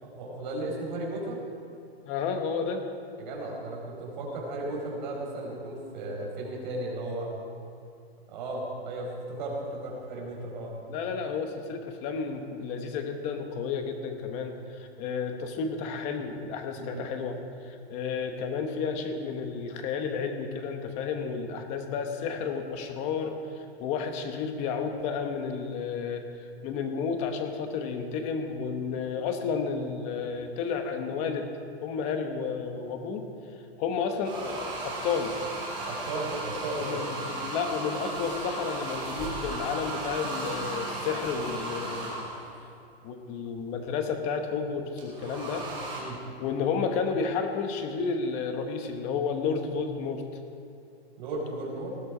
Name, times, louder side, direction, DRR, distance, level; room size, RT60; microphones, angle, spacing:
voice 1, 0.0-1.4 3.2-7.3 8.3-10.7 16.8-17.1 35.8-37.0 45.9-46.2 51.2-52.0, right 2 dB, 45° right, -2 dB, 4.7 m, -35 dB
voice 2, 2.1-2.8 10.9-17.4 17.6-26.2 26.6-31.5 31.8-33.3 33.8-35.3 36.8-42.3 43.0-45.7 46.4-50.2, left 5 dB, 20° left, 6 dB, 1.0 m, -31 dB
sound 1, 34.2-42.6 45.0-46.0, right 2 dB, 15° right, 3.4 m, -35 dB
19.5 x 13.0 x 5.0 m, 2.5 s
hypercardioid pair, 170°, 32 cm